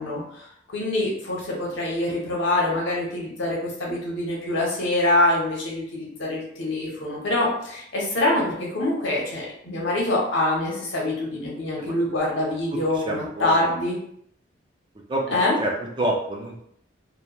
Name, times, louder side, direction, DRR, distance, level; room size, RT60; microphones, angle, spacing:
voice 1, 0.0-14.0 15.3-15.5, left 1 dB, 75° left, -3 dB, 0.9 m, -25 dB
voice 2, 12.7-13.6 15.1-16.6, right 1 dB, 25° right, -1 dB, 0.4 m, -28 dB
3.0 x 2.2 x 2.3 m, 0.70 s
head